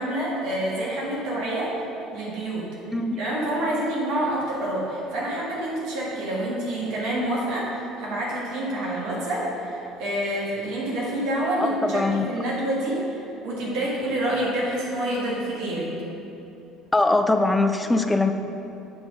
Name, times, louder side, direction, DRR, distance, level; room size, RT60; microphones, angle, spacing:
voice 1, 0.0-1.7 2.1-2.7 3.2-7.7 8.0-15.9, right 1 dB, 60° right, -5 dB, 1.5 m, -27 dB
voice 2, 11.6-12.3 16.9-18.3, left 2 dB, 10° left, 6 dB, 0.4 m, -22 dB
7.7 x 3.5 x 4.9 m, 2.8 s
figure-of-eight pair, 60°, 0 cm